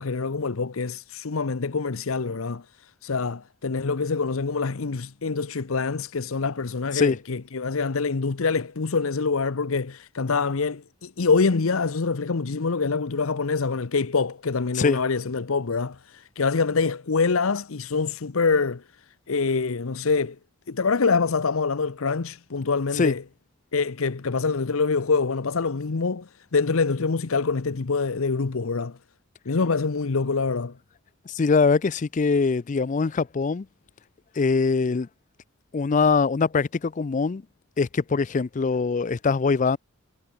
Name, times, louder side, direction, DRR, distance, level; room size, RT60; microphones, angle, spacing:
voice 1, 0.0-18.8 19.3-20.4 20.7-23.2 23.7-29.0 29.5-30.7, left 4 dB, 80° left, 0.8 m, -25 dB
voice 2, 31.3-33.7 34.3-35.1 35.7-37.4 37.8-39.8, left 4 dB, 35° left, 0.4 m, -22 dB
head